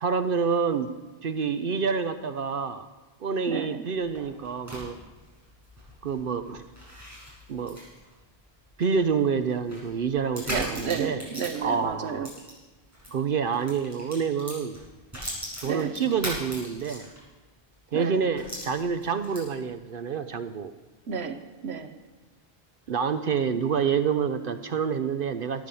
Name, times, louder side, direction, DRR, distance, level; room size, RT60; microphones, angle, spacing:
voice 1, 0.0-0.9 1.2-2.8 3.2-5.0 6.0-6.6 7.5-7.8 8.8-11.2 11.6-12.3 13.1-14.8 15.6-17.1 17.9-20.7 22.9-25.7, right 6 dB, 60° right, 10 dB, 0.8 m, -27 dB
voice 2, 3.5-3.8 10.5-12.3 15.6-16.0 17.9-18.2 21.1-22.0, right 6 dB, 80° right, 9 dB, 1.1 m, -32 dB
sound 1, 3.9-13.1 13.5-17.4 17.7-17.8 18.4-19.7, equal, 15° right, 6.6 m, -40 dB
15.5 x 9.3 x 7.0 m, 1.2 s
omnidirectional pair, 1.1 m